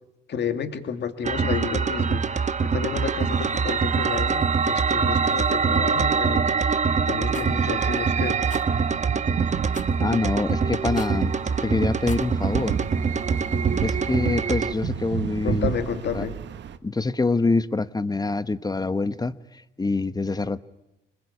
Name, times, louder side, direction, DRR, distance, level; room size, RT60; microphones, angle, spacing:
voice 1, 0.3-6.5 7.1-8.4 15.4-16.4, left 7 dB, 60° left, 2.4 m, -31 dB
sound 1, 1.2-14.7, right 5 dB, 35° right, 1.3 m, -24 dB
sound 2, 6.9-16.8, right 9 dB, 65° right, 1.5 m, -33 dB
Rattle, 7.3-7.5 8.5-8.7 9.7-10.0 10.9-11.2 11.9-12.3, left 5 dB, 40° left, 1.5 m, -41 dB
voice 2, 10.0-11.3 11.6-12.8 13.8-15.7 16.1-16.3 16.8-20.6, left 3 dB, 20° left, 1.0 m, -25 dB
26.0 x 20.5 x 8.6 m
cardioid pair, 90°, 20 cm